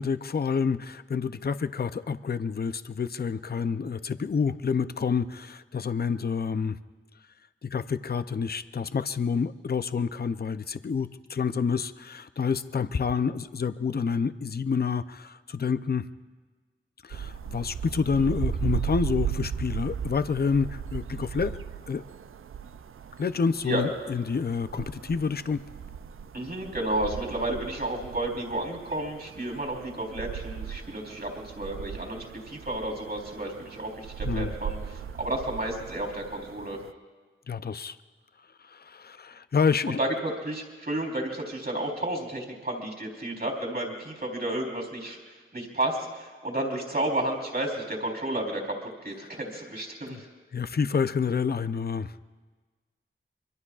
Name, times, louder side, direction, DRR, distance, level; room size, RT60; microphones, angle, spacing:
voice 1, 0.0-6.8 7.6-16.1 17.0-21.6 21.9-22.0 23.2-25.6 34.2-34.5 37.5-38.0 38.6-40.0 50.1-50.2 50.5-52.2, left 5 dB, 50° left, 12 dB, 0.5 m, -28 dB
sound 1, 17.1-36.9, right 8 dB, 80° right, 0.4 m, -37 dB
voice 2, 26.3-36.8 40.0-50.2, right 1 dB, 45° right, 2 dB, 3.8 m, -32 dB
25.5 x 23.0 x 2.4 m, 1.4 s
cardioid pair, 45°, 21 cm